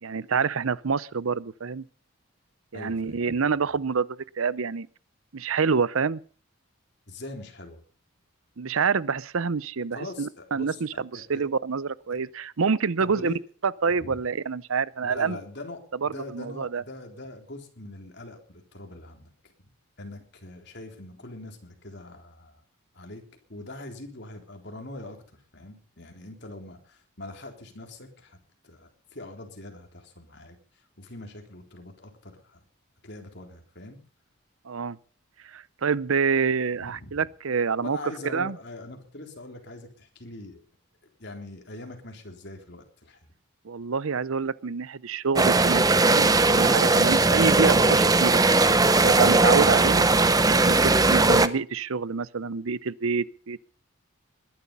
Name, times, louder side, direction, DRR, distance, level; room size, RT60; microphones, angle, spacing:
voice 1, 0.0-1.8 2.7-4.1 4.4-4.9 5.3-6.2 8.6-13.3 13.6-15.4 16.0-16.8 34.6-35.0 35.4-38.0 38.2-38.6 43.6-48.4 49.0-50.1 50.5-53.6, right 5 dB, 80° right, 0.7 m, -27 dB
voice 2, 2.7-3.2 7.1-7.8 9.9-11.4 13.0-13.4 13.9-14.2 15.0-19.5 20.0-22.6 22.9-23.2 23.5-28.4 28.6-32.6 33.0-34.0 36.8-37.2 37.8-40.6 41.2-43.3, left 2 dB, 55° left, 3.8 m, -42 dB
sound 1, 45.3-51.5, right 3 dB, 15° right, 0.7 m, -19 dB
21.0 x 11.5 x 5.5 m
head